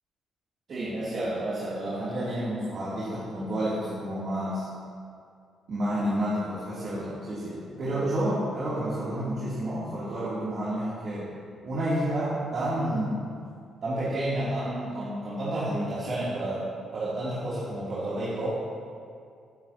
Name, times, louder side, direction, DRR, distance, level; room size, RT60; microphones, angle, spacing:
voice 1, 0.7-4.7 5.7-11.3 11.6-13.2 13.8-18.6, right 1 dB, 55° right, -10 dB, 2.8 m, -30 dB
16.0 x 9.5 x 2.9 m, 2.3 s
cardioid pair, 90°, 0 cm